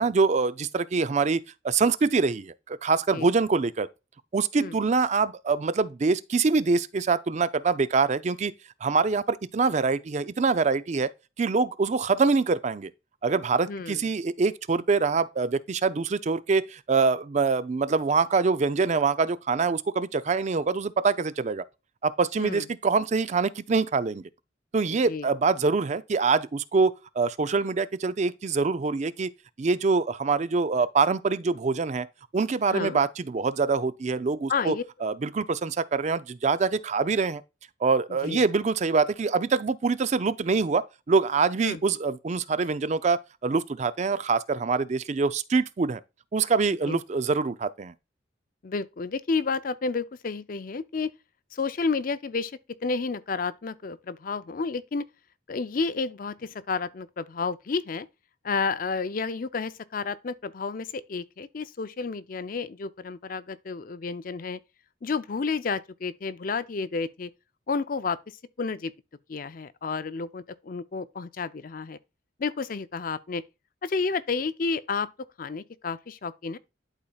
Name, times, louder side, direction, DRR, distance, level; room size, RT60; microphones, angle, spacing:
voice 1, 0.0-3.9 4.3-8.5 8.8-11.1 11.4-12.9 13.2-21.6 22.0-24.2 24.7-29.3 29.6-32.1 32.3-37.4 37.8-46.0 46.3-47.9, right 4 dB, 40° right, 0.4 m, -25 dB
voice 2, 13.7-14.1 22.4-22.7 25.1-25.3 32.7-33.0 34.5-34.8 38.2-38.4 41.6-41.8 46.9-47.0 48.6-51.1 51.5-52.5 52.8-55.1 55.5-58.1 58.4-64.6 65.0-67.3 67.7-68.2 68.6-68.9 69.3-72.0 72.4-73.4 73.8-75.1 75.4-76.6, left 4 dB, 45° left, 0.5 m, -31 dB
11.5 x 4.2 x 2.3 m
head